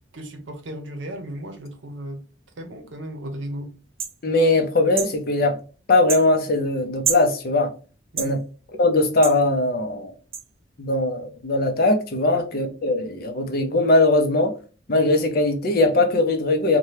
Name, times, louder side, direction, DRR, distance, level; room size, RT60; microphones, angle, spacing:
voice 1, 0.1-2.3 2.6-3.8 8.1-8.4 12.3-12.4, right 1 dB, 75° right, 0.7 m, -35 dB
sound 1, 4.0-4.2 5.0-5.1 6.1-6.3 7.0-7.3 8.2-8.3 9.2-9.4 10.3-10.4, right 7 dB, 30° right, 0.4 m, -27 dB
voice 2, 4.2-5.6 5.9-7.7 8.2-8.4 8.8-10.1 10.8-14.6 14.9-16.8, left 2 dB, 50° left, 0.6 m, -20 dB
2.8 x 2.2 x 3.2 m
head